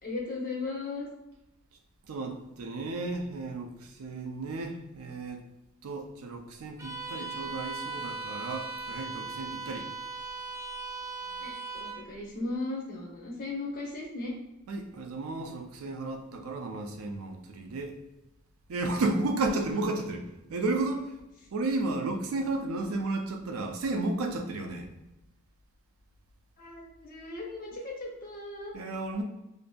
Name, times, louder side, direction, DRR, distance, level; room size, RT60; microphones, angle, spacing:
voice 1, 0.0-1.1 11.4-14.3 26.6-28.8, left 3 dB, 40° left, -2 dB, 0.7 m, -37 dB
voice 2, 2.1-3.7 4.0-5.4 5.8-9.9 14.7-17.9 18.7-20.2 20.5-21.1 21.5-24.9 28.7-29.2, right 2 dB, 80° right, 4 dB, 0.4 m, -33 dB
Bowed string instrument, 6.8-12.1, right 4 dB, 15° right, 0.3 m, -38 dB
2.5 x 2.5 x 2.2 m, 0.94 s
head